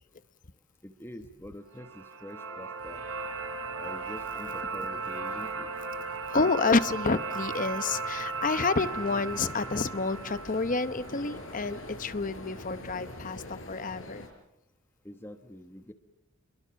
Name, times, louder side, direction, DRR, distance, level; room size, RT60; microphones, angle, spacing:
voice 1, 0.8-3.1 3.7-5.7 15.0-15.9, left 1 dB, 10° left, 7 dB, 1.1 m, -45 dB
sound 1, 1.7-11.8, right 4 dB, 85° right, 3.5 m, -37 dB
sound 2, 2.8-13.1, right 1 dB, 45° right, 3.8 m, -54 dB
voice 2, 6.3-14.2, left 3 dB, 40° left, 13 dB, 0.9 m, -29 dB
sound 3, 8.7-14.3, left 2 dB, 70° left, 6.0 m, -44 dB
29.5 x 22.5 x 7.1 m, 0.90 s
head